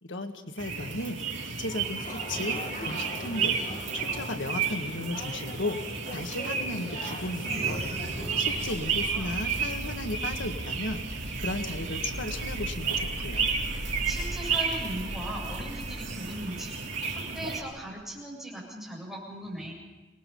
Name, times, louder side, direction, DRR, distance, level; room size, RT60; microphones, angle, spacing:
voice 1, 0.0-3.6 3.9-7.8 8.2-13.5, left 2 dB, 75° left, 5 dB, 1.8 m, -35 dB
sound 1, 0.6-17.6, right 5 dB, 80° right, 3.4 m, -32 dB
sound 2, 1.6-9.0, left 1 dB, 45° left, 2.7 m, -41 dB
sound 3, 7.5-18.2, equal, 35° right, 2.4 m, -39 dB
voice 2, 8.1-8.5 9.0-9.3 14.0-16.7 17.1-19.7, equal, ahead, -4 dB, 7.8 m, -39 dB
27.0 x 20.0 x 5.5 m, 1.2 s
head